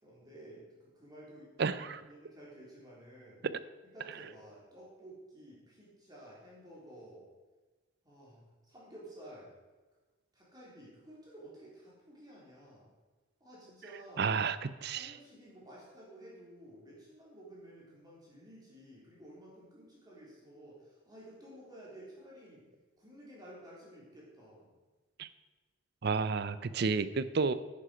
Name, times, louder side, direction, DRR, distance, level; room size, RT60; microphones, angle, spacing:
voice 1, 0.0-3.4 3.8-7.3 8.0-9.5 10.3-12.9 13.4-14.3 14.9-22.7 23.0-24.8, right 1 dB, 20° right, -6 dB, 3.5 m, -53 dB
voice 2, 1.6-2.0 3.4-3.5 14.2-15.2 25.2-25.3 26.0-27.5, right 5 dB, 50° right, 15 dB, 0.5 m, -31 dB
10.0 x 9.9 x 5.1 m, 1.3 s
head